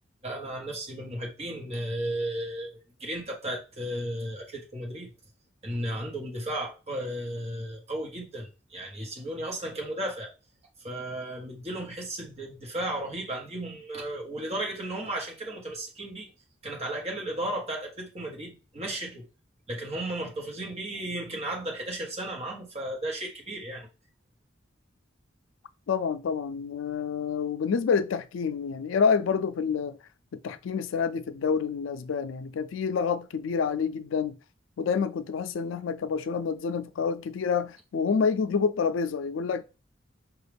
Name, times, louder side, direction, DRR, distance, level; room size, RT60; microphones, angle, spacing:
voice 1, 0.2-5.1 5.6-10.3 10.8-16.3 16.6-19.2 19.7-23.9, right 1 dB, 35° right, 1.3 m, -34 dB
voice 2, 25.9-30.0 30.3-34.4 34.8-39.6, left 6 dB, 85° left, 0.4 m, -28 dB
4.7 x 2.4 x 3.4 m
head